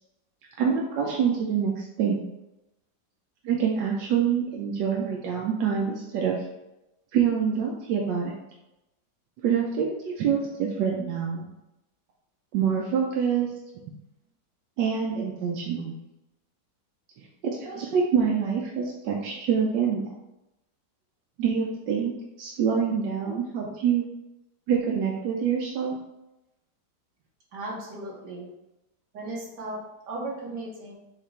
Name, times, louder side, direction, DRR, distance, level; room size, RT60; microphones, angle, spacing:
voice 1, 0.6-2.2 3.4-6.4 7.1-8.3 9.4-11.5 12.5-13.5 14.8-15.9 17.2-20.0 21.4-22.1 22.4-24.0 24.7-25.9, right 7 dB, 90° right, -1 dB, 1.3 m, -26 dB
voice 2, 27.5-28.5 29.1-30.9, right 2 dB, 70° right, -3 dB, 1.9 m, -36 dB
6.6 x 2.5 x 3.3 m, 0.92 s
omnidirectional pair, 1.9 m